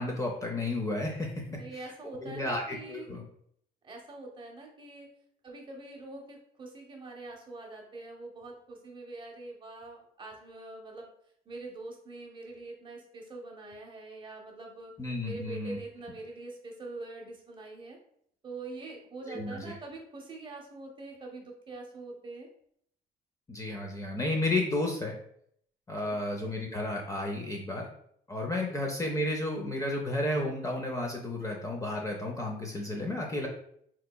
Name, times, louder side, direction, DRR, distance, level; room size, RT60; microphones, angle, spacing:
voice 1, 0.0-1.3 2.2-3.2 15.0-15.8 19.3-19.7 23.5-25.2 25.9-27.9 28.3-33.5, left 2 dB, 20° left, 0 dB, 0.5 m, -32 dB
voice 2, 1.5-3.2 3.8-5.1 5.4-11.1 11.5-14.9 15.2-18.0 18.4-22.5 25.9-26.2 28.6-28.8, right 2 dB, 30° right, 0 dB, 0.8 m, -44 dB
3.4 x 2.9 x 2.2 m, 0.67 s
cardioid pair, 110°, 17 cm